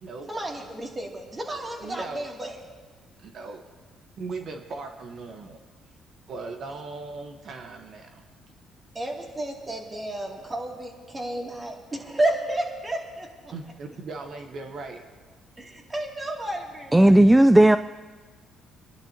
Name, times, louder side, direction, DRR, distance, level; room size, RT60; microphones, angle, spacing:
voice 1, 0.3-2.6 8.9-13.5 15.6-17.2, right 1 dB, 25° right, -1 dB, 2.8 m, -31 dB
voice 2, 1.8-2.2 3.2-3.6 4.2-5.6 6.3-8.2 13.5-15.0, right 3 dB, 60° right, 4 dB, 1.3 m, -38 dB
voice 3, 16.9-17.8, right 1 dB, 10° right, 12 dB, 0.3 m, -14 dB
27.0 x 11.5 x 3.0 m, 1.4 s
supercardioid pair, 75°, 0 cm